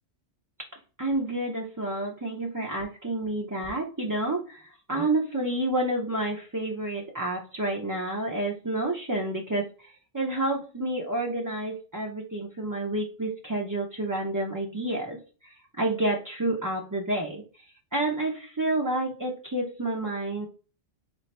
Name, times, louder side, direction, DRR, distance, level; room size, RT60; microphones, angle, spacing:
voice 1, 1.0-17.4 17.9-20.5, right 2 dB, 25° right, -1 dB, 0.4 m, -29 dB
4.1 x 2.8 x 3.2 m, 0.35 s
omnidirectional pair, 1.2 m